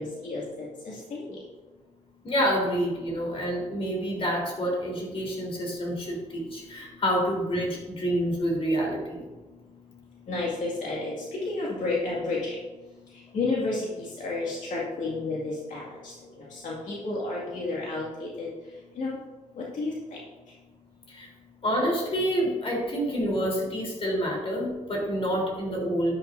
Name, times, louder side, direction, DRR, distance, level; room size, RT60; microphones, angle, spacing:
voice 1, 0.0-1.4 10.3-12.6 13.3-16.1 16.4-18.5 19.0-19.2 19.6-20.2, left 3 dB, 75° left, -5 dB, 2.2 m, -31 dB
voice 2, 2.2-9.2 21.1-21.3 21.6-26.1, equal, 45° left, -2 dB, 3.7 m, -28 dB
12.0 x 11.0 x 2.7 m, 1.2 s
wide cardioid pair, 145°, 13 cm